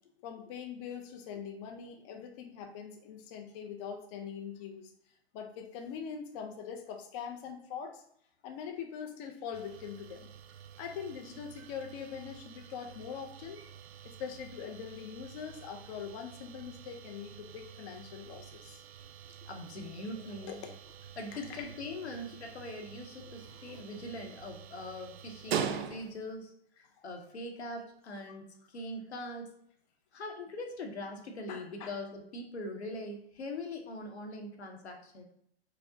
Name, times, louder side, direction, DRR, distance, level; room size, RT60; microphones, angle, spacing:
voice 1, 0.2-4.9 5.3-8.0 8.4-10.3 10.8-13.6 14.0-18.8 20.5-20.7 21.3-21.7 23.5-23.6 31.5-31.9, left 7 dB, 30° left, 3 dB, 0.4 m, -43 dB
sound 1, 9.5-26.4, right 8 dB, 65° right, 0.5 m, -44 dB
voice 2, 19.3-20.6 21.2-26.5 27.0-29.5 30.1-35.2, left 1 dB, 85° left, 3 dB, 0.9 m, -42 dB
4.6 x 2.0 x 2.6 m, 0.69 s
hypercardioid pair, 125°, 32 cm